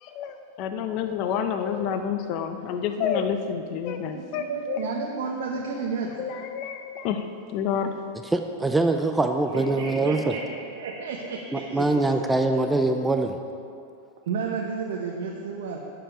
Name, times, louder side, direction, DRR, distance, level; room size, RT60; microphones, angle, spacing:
voice 1, 0.0-4.8 6.2-7.2 7.5-7.9, left 7 dB, 50° left, 7 dB, 0.9 m, -29 dB
voice 2, 4.0-6.1 9.5-10.4 10.7-12.1 14.3-15.8, right 5 dB, 70° right, -1 dB, 1.0 m, -31 dB
voice 3, 8.3-10.3 11.5-13.4, right 2 dB, 10° right, 5 dB, 0.6 m, -23 dB
10.0 x 8.0 x 5.1 m, 2.4 s
hypercardioid pair, 110°, 0 cm